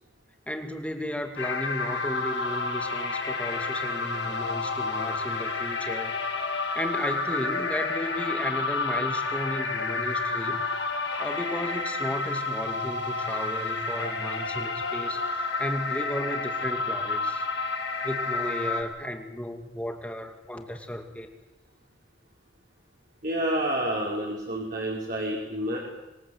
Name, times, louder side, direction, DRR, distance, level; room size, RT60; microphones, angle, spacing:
voice 1, 0.5-6.1 6.5-17.4 18.0-21.3, left 1 dB, 5° left, 5 dB, 2.3 m, -34 dB
sound 1, 1.4-18.8, left 3 dB, 80° left, 5.8 m, -30 dB
voice 2, 23.2-25.8, right 1 dB, 50° right, -4 dB, 5.1 m, -29 dB
26.0 x 22.0 x 8.0 m, 1.1 s
head